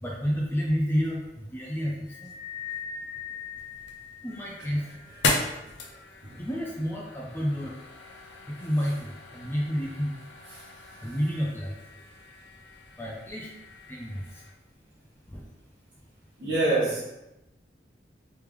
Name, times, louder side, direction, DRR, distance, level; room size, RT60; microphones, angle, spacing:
voice 1, 0.0-1.9 2.2-2.3 4.2-4.9 6.4-7.7 8.6-10.1 11.0-11.7 13.0-13.5 13.9-14.2 15.3-15.4, equal, 15° left, -3 dB, 0.5 m, -29 dB
sound 1, 2.0-4.7, left 7 dB, 90° right, 1.2 m, -40 dB
sound 2, 3.6-14.5, left 3 dB, 80° left, 0.6 m, -37 dB
voice 2, 16.4-17.0, right 2 dB, 70° right, -6 dB, 0.9 m, -25 dB
3.3 x 3.2 x 3.4 m, 0.93 s
head